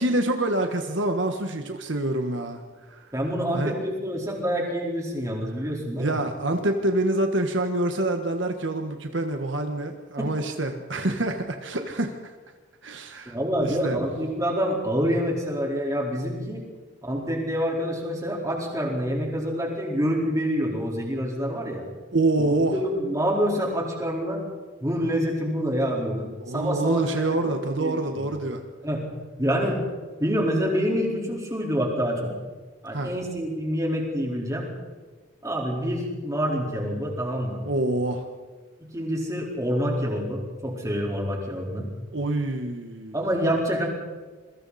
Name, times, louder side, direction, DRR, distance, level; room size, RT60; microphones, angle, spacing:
voice 1, 0.0-2.6 2.9-3.1 3.5-3.7 6.0-12.3 12.8-14.0 22.1-22.8 26.4-28.6 32.9-33.1 37.6-38.2 42.1-43.2, right 2 dB, 65° right, 5 dB, 1.5 m, -26 dB
voice 2, 3.1-6.2 10.2-10.3 13.3-16.6 17.0-21.8 22.4-24.4 24.8-26.3 26.5-27.5 27.8-28.1 28.8-29.0 29.4-29.8 30.2-32.3 32.8-34.7 35.4-37.6 38.8-41.9 43.1-43.8, equal, 15° right, -2 dB, 4.3 m, -27 dB
27.5 x 23.0 x 4.3 m, 1.4 s
head